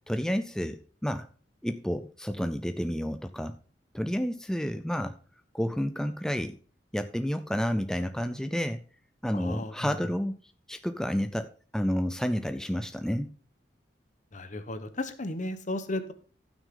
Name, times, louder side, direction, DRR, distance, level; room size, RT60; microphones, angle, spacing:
voice 1, 0.1-1.3 1.6-3.6 3.9-5.1 5.5-6.6 6.9-8.8 9.2-10.3 10.7-13.3, equal, 5° left, 9 dB, 0.4 m, -30 dB
voice 2, 9.3-9.9 14.3-16.1, left 1 dB, 45° left, 10 dB, 1.1 m, -34 dB
15.0 x 6.3 x 3.8 m, 0.41 s
head